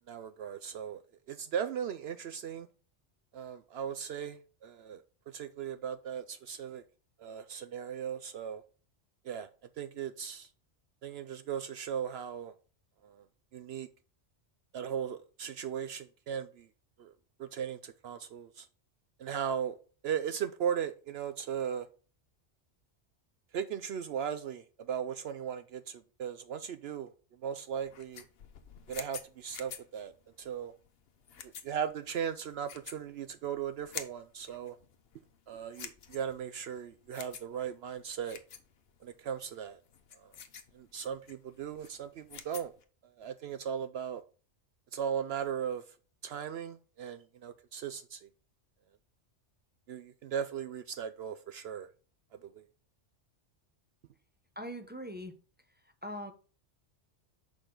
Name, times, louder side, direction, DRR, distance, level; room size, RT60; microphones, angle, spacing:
voice 1, 0.1-1.0 1.3-2.7 3.3-6.8 7.2-8.6 9.2-9.5 9.8-10.5 11.0-12.5 13.0-13.3 13.5-13.9 14.7-16.7 17.0-17.1 17.4-18.7 19.2-19.8 20.0-21.9 23.5-28.2 28.9-30.1 30.4-30.7 31.4-34.8 35.5-38.4 39.0-39.8 40.1-40.3 40.7-42.7 43.0-44.2 44.9-46.0 46.2-48.3 49.9-51.9 52.3-52.6, right 8 dB, 65° right, 0.7 m, -37 dB
sound 1, 27.7-42.8, left 7 dB, 60° left, 1.0 m, -49 dB
voice 2, 54.6-55.3 56.0-56.3, equal, 10° right, 0.5 m, -41 dB
6.5 x 4.9 x 3.8 m
omnidirectional pair, 1.2 m